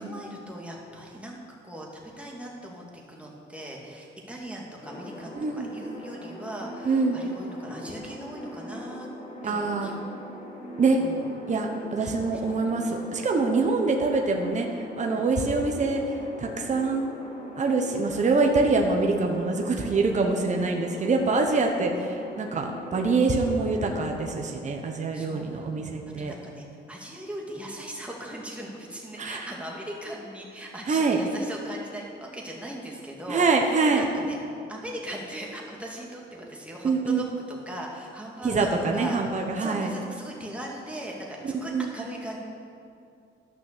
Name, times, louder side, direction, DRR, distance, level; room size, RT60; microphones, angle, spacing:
voice 1, 0.0-1.4 1.6-9.1 9.4-10.0 11.0-11.2 12.0-12.4 15.2-15.3 25.1-25.7 26.2-34.4 34.7-42.4, right 1 dB, 5° right, -2 dB, 2.2 m, -39 dB
sound 1, 4.8-24.4, left 1 dB, 40° left, 2.2 m, -41 dB
voice 2, 5.3-5.7 6.8-7.2 9.4-10.0 10.8-11.0 11.5-14.7 15.0-16.0 16.4-17.1 17.6-26.3 29.2-29.4 30.9-31.2 33.3-34.1 36.8-37.2 38.4-39.9 41.7-41.9, right 3 dB, 35° right, 2 dB, 1.2 m, -25 dB
11.5 x 6.2 x 6.8 m, 2.5 s
cardioid pair, 90°, 20 cm